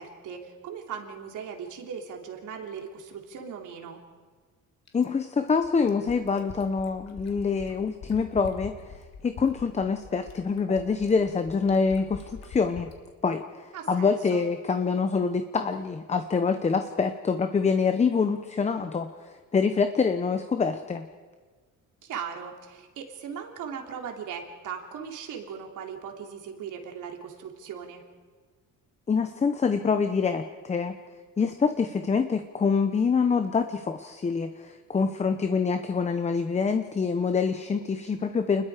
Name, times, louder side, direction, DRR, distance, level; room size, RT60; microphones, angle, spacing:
voice 1, 0.0-4.0 13.7-14.4 22.0-28.0, right 7 dB, 60° right, 2 dB, 3.3 m, -38 dB
Fill (with liquid), 4.9-13.0 14.3-14.4, left 5 dB, 50° left, 2.8 m, -44 dB
voice 2, 4.9-12.9 13.2-21.0 29.1-30.9 31.4-38.6, left 5 dB, 20° left, 8 dB, 0.9 m, -26 dB
29.0 x 21.0 x 5.0 m, 1.5 s
cardioid pair, 150°, 34 cm